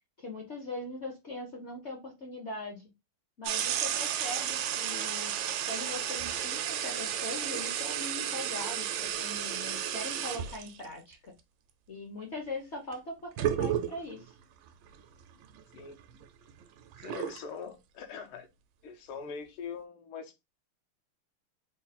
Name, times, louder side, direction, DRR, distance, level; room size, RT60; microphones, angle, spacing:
voice 1, 0.2-2.9 3.4-5.3 5.6-11.3 11.9-14.3, left 2 dB, 65° left, 0.7 m, -41 dB
sound 1, 3.4-10.8 12.9-13.0 13.4-14.2 14.9-15.0 15.4-17.4, right 10 dB, 75° right, 1.2 m, -33 dB
voice 2, 17.0-18.5 18.8-20.4, left 5 dB, 80° left, 1.5 m, -42 dB
3.9 x 2.2 x 4.1 m
omnidirectional pair, 2.4 m